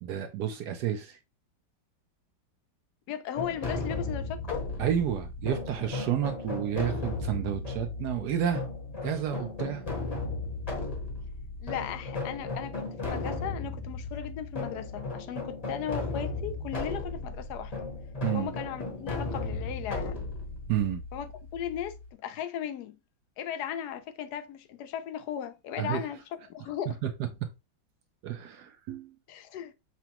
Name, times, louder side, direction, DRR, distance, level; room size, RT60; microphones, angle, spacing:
voice 1, 0.0-1.2 4.8-8.6 9.0-9.9 18.2-18.5 20.7-21.0 25.8-26.0 27.0-27.1 28.2-29.1, right 10 dB, 70° right, 1.1 m, -30 dB
voice 2, 3.1-4.6 11.6-17.9 18.3-20.3 21.1-23.0 23.4-26.2 26.5-27.0 29.3-29.7, left 9 dB, 70° left, 1.0 m, -37 dB
sound 1, 3.3-22.1, left 3 dB, 25° left, 0.9 m, -35 dB
6.0 x 2.2 x 2.9 m
omnidirectional pair, 2.0 m